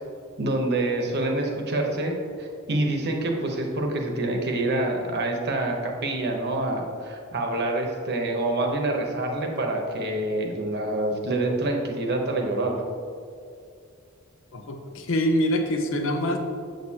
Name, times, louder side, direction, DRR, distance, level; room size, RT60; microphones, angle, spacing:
voice 1, 0.4-12.8, right 2 dB, 50° right, 2 dB, 1.0 m, -26 dB
voice 2, 14.5-16.4, equal, 65° left, 5 dB, 0.7 m, -25 dB
8.0 x 6.4 x 2.8 m, 2.4 s
head